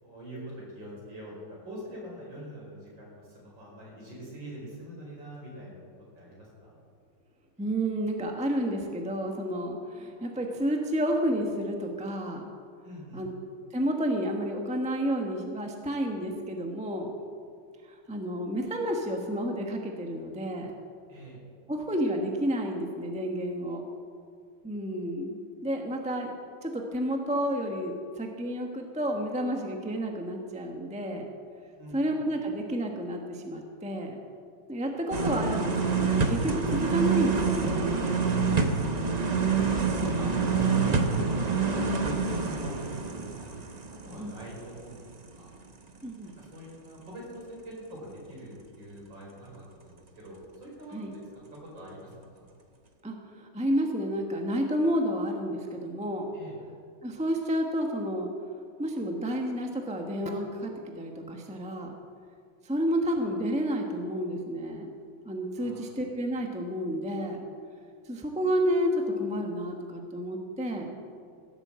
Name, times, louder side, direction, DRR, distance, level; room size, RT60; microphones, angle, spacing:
voice 1, 0.0-5.8 6.1-6.8 12.8-13.2 21.1-21.4 31.8-32.2 40.1-42.9 43.3-43.5 44.0-45.0 45.4-45.5 46.4-51.0 51.3-52.5 56.3-56.6 65.6-66.0, equal, 65° right, -4 dB, 5.5 m, -44 dB
voice 2, 7.6-12.4 13.1-13.3 13.7-17.1 17.9-20.7 21.7-23.8 24.6-26.3 26.6-31.3 31.9-34.2 34.7-38.2 40.4-40.5 44.2-44.4 46.0-46.3 50.9-51.1 53.0-56.3 57.0-58.3 58.8-60.7 61.0-61.9 62.6-64.9 65.2-67.4 68.1-70.9, equal, 5° right, 2 dB, 0.9 m, -30 dB
sound 1, 35.1-44.9 45.3-45.4, right 5 dB, 40° right, 0.6 m, -27 dB
16.0 x 8.1 x 7.6 m, 2.2 s
omnidirectional pair, 2.2 m